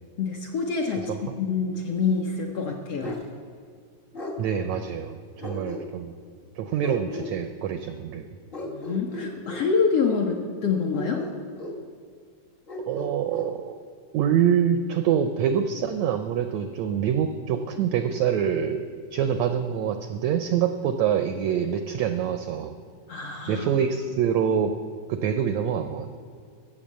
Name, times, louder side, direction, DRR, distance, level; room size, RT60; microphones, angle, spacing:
voice 1, 0.2-1.1 1.4-3.2 8.6-11.3 23.1-23.7, left 5 dB, 65° left, 1 dB, 1.5 m, -26 dB
Bark, 3.0-3.3 4.1-4.4 5.4-6.1 6.8-7.3 8.5-9.7 10.9-11.8 12.7-13.5, left 2 dB, 85° left, 0.5 m, -35 dB
voice 2, 4.4-6.1 6.6-8.3 12.9-13.7 14.1-22.7 23.5-24.7 25.1-26.2, right 8 dB, 80° right, 8 dB, 1.5 m, -25 dB
14.0 x 7.0 x 7.4 m, 2.2 s
omnidirectional pair, 3.8 m